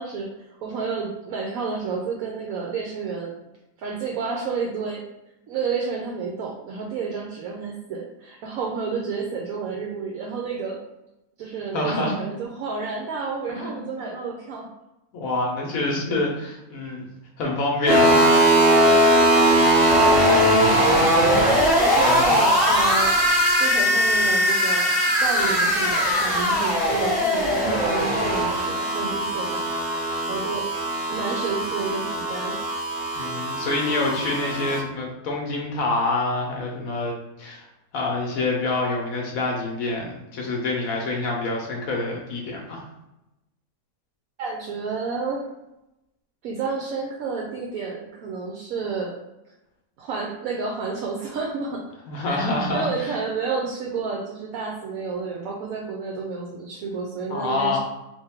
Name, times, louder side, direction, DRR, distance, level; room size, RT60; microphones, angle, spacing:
voice 1, 0.0-3.3 3.8-5.0 5.5-10.8 11.4-14.7 18.8-19.5 20.1-20.5 20.7-21.3 21.8-23.1 23.6-29.6 30.3-30.7 31.1-32.6 44.4-45.5 46.4-49.2 50.0-51.9 52.3-52.4 52.7-57.8, right 4 dB, 70° right, -1 dB, 1.0 m, -30 dB
voice 2, 11.7-12.2 13.5-13.9 15.1-17.1 17.4-18.6 22.1-22.4 33.1-37.6 37.9-42.8 52.1-53.1 57.3-57.8, left 2 dB, 70° left, -1 dB, 1.2 m, -27 dB
sound 1, 17.9-34.8, equal, 20° right, 0.9 m, -20 dB
3.3 x 2.9 x 3.6 m, 0.92 s
omnidirectional pair, 1.6 m